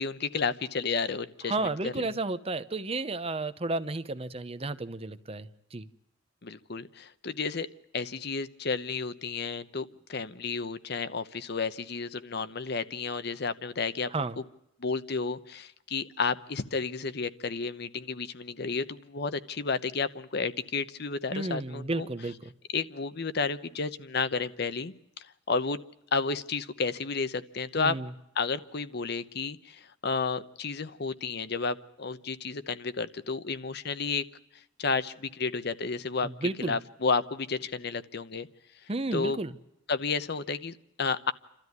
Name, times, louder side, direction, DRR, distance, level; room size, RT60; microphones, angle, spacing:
voice 1, 0.0-1.5 1.8-2.1 6.4-7.7 7.9-14.1 14.8-22.1 22.7-25.8 26.1-28.0 28.4-34.2 34.8-38.5 39.1-39.4 39.9-41.3, left 4 dB, 60° left, 13 dB, 0.9 m, -32 dB
voice 2, 1.5-5.9 14.1-14.4 21.3-22.4 27.8-28.1 36.2-36.8 38.9-39.6, right 2 dB, 30° right, 13 dB, 0.8 m, -32 dB
29.0 x 13.5 x 9.5 m, 0.83 s
head